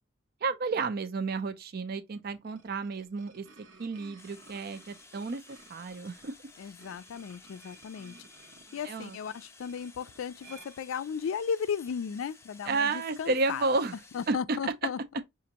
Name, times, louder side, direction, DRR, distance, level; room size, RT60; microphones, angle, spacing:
voice 1, 0.4-3.5 3.8-6.3 8.9-9.2 12.7-13.9 14.3-14.4, right 3 dB, 50° right, 0.4 m, -31 dB
sound 1, 2.2-11.5, right 3 dB, 65° right, 0.9 m, -57 dB
sound 2, 4.2-14.3, left 3 dB, 15° left, 0.5 m, -55 dB
voice 2, 6.6-13.7 14.1-15.0, left 7 dB, 85° left, 0.4 m, -35 dB
6.0 x 2.5 x 2.9 m
head